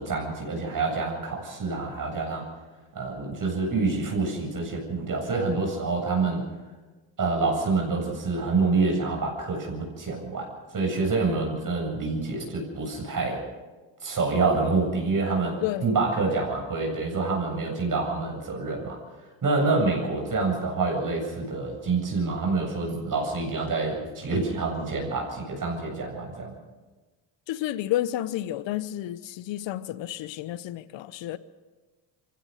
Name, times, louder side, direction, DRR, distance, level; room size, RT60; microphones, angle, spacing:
voice 1, 0.0-2.5 2.9-6.4 7.2-13.4 14.0-19.0 19.4-26.5, right 3 dB, 45° right, 7.9 m, -27 dB
voice 2, 15.6-15.9 27.5-31.4, left 13 dB, 75° left, 1.0 m, -31 dB
24.0 x 16.0 x 6.6 m
supercardioid pair, 75°, 45 cm